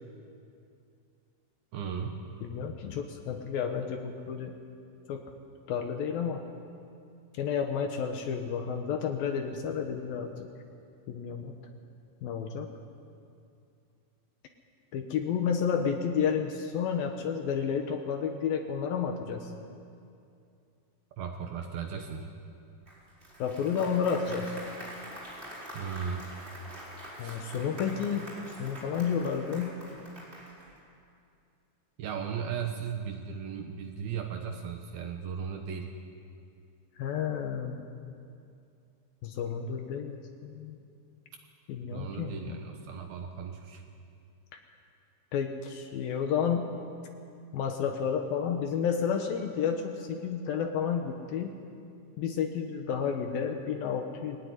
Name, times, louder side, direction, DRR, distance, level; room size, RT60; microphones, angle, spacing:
voice 1, 1.7-2.2 21.2-22.3 25.7-26.2 27.2-27.4 32.0-35.9 41.9-43.8, right 7 dB, 70° right, 4 dB, 2.4 m, -36 dB
voice 2, 2.4-4.5 5.1-5.2 5.7-6.4 7.3-10.3 11.1-11.5 12.2-12.7 14.9-19.5 23.4-24.6 27.2-28.3 28.6-29.7 37.0-37.8 39.2-40.8 41.7-42.6 45.3-46.7 47.5-51.5 52.2-54.4, left 7 dB, 70° left, 4 dB, 2.3 m, -31 dB
Applause, 22.9-30.8, equal, 15° right, 4.3 m, -45 dB
20.5 x 16.5 x 9.8 m, 2.5 s
omnidirectional pair, 5.5 m